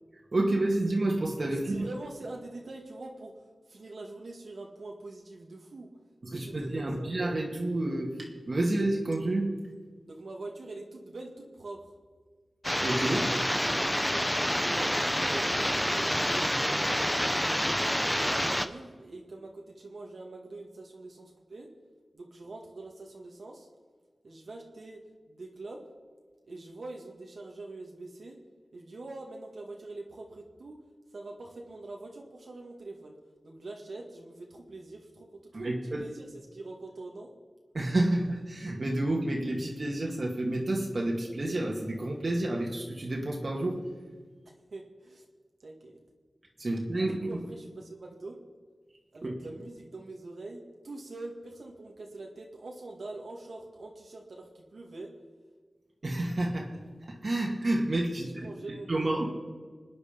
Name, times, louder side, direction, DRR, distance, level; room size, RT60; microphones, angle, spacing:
voice 1, 0.3-1.9 6.2-9.5 12.8-13.4 35.6-36.0 37.7-43.8 46.6-47.4 49.2-49.3 56.0-56.7 57.1-58.5 58.9-59.3, right 1 dB, 55° right, -1 dB, 2.2 m, -29 dB
voice 2, 1.7-5.9 6.3-7.1 10.1-11.9 14.5-17.6 18.1-21.7 22.1-23.7 24.2-25.0 25.3-25.8 26.4-28.4 28.7-30.8 31.1-33.2 33.4-37.3 44.7-45.3 45.6-46.0 46.9-48.4 49.1-55.1 58.1-59.3, right 2 dB, 75° right, 0 dB, 2.0 m, -44 dB
sound 1, 12.6-18.7, equal, 5° left, 0.8 m, -28 dB
25.0 x 9.5 x 5.2 m, 1.5 s
wide cardioid pair, 60°, 0 cm